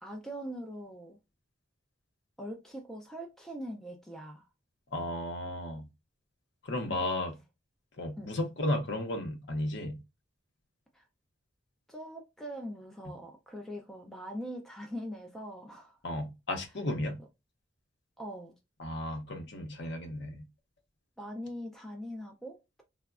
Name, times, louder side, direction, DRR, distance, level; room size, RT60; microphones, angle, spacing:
voice 1, 0.0-1.2 2.4-4.5 6.9-7.2 8.2-8.3 10.9-11.1 11.9-16.0 18.2-18.5 21.2-22.8, equal, ahead, 0.3 m, -42 dB
voice 2, 4.9-5.9 6.6-7.3 8.0-10.0 16.0-17.2 18.8-20.4, left 1 dB, 60° left, 0.6 m, -34 dB
3.4 x 2.0 x 2.3 m
head